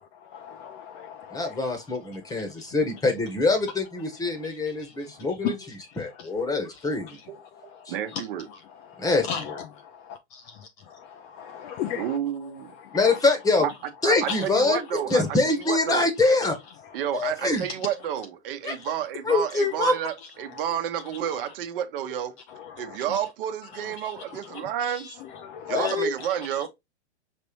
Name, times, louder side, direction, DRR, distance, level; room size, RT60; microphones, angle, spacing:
voice 1, 0.3-1.6 4.8-4.9 5.4-5.5 6.2-6.3 8.9-9.6 11.1-12.1 12.9-13.1 14.3-14.4 22.8-23.0 24.0-24.1 24.5-24.7 25.4-25.9, left 8 dB, 30° left, 0.4 m, -33 dB
voice 2, 1.3-7.1 7.9-8.0 9.0-9.6 12.9-13.7 14.0-16.6 17.1-17.6 18.6-18.7 19.2-19.9 25.7-26.1, left 3 dB, 10° left, 1.1 m, -24 dB
voice 3, 7.9-8.5 11.9-12.7 13.6-13.7 14.0-16.1 16.9-22.3 22.8-25.2 25.7-26.7, right 10 dB, 55° right, 1.0 m, -30 dB
5.2 x 3.0 x 2.9 m
hypercardioid pair, 125°, 34 cm